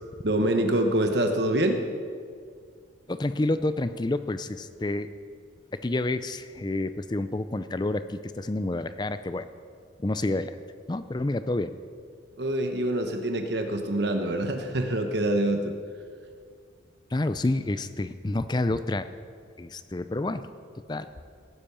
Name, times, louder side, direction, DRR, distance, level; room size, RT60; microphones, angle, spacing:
voice 1, 0.2-1.8 12.4-15.7, right 1 dB, 60° right, 5 dB, 1.1 m, -25 dB
voice 2, 3.1-5.1 5.7-9.5 10.0-10.5 10.9-11.7 17.1-19.1 19.6-20.4 20.9-21.1, left 2 dB, 20° left, 12 dB, 0.4 m, -29 dB
17.0 x 10.5 x 7.0 m, 2.1 s
head